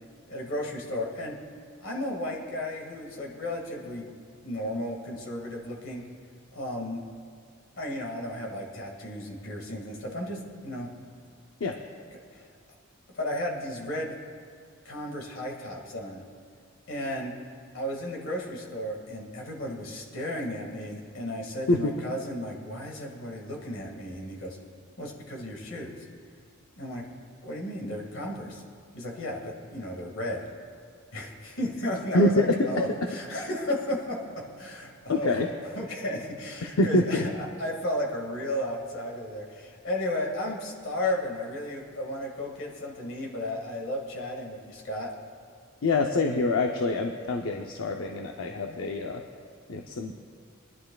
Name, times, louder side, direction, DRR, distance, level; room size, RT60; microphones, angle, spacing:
voice 1, 0.3-1.4 1.8-4.1 4.4-6.0 6.5-7.0 7.8-10.9 12.3-12.5 13.1-14.1 14.9-16.2 16.9-17.3 17.7-24.6 25.0-25.9 26.8-27.0 27.4-28.6 28.9-30.4 31.1-34.2 34.6-35.4 35.7-45.1, left 1 dB, 65° left, 0 dB, 2.0 m, -34 dB
voice 2, 32.1-32.7 35.1-35.5 36.6-37.2 45.8-49.2 49.7-50.2, left 2 dB, 85° left, 3 dB, 0.6 m, -25 dB
21.5 x 11.0 x 2.3 m, 2.3 s
head